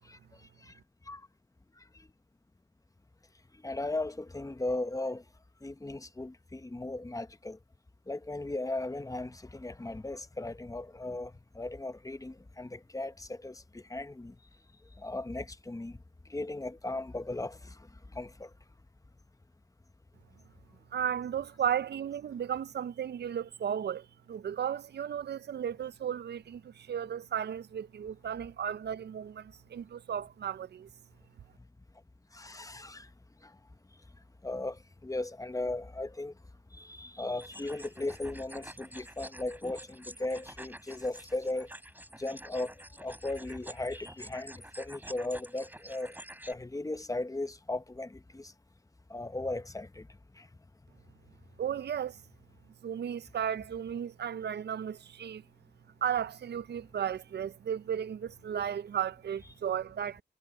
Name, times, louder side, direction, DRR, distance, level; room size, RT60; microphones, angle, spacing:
voice 1, 3.6-5.2 5.6-7.6 8.1-14.3 15.0-16.0 16.3-17.8 18.1-18.5 32.3-33.1 33.4-33.5 34.4-36.3 36.7-41.7 42.2-46.1 46.5-48.5 49.1-50.1 50.4-50.5, left 2 dB, 20° left, 0.9 m, -37 dB
voice 2, 20.9-30.9 51.6-52.2 52.8-55.4 56.0-60.2, right 9 dB, 65° right, 0.5 m, -34 dB
sound 1, 37.4-46.5, right 1 dB, 10° right, 3.4 m, -49 dB
wide cardioid pair, 75°, 18 cm